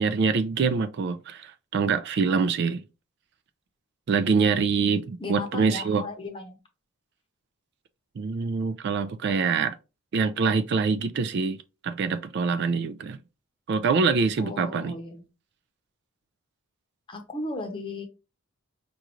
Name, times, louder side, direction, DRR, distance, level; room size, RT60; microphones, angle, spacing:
voice 1, 0.0-2.8 4.1-6.0 8.2-9.7 10.1-11.6 11.8-13.2 13.7-15.0, right 5 dB, 50° right, 0.3 m, -25 dB
voice 2, 5.2-6.6 14.4-15.2 17.1-18.1, left 2 dB, 20° left, 0.8 m, -36 dB
5.2 x 2.4 x 3.0 m
head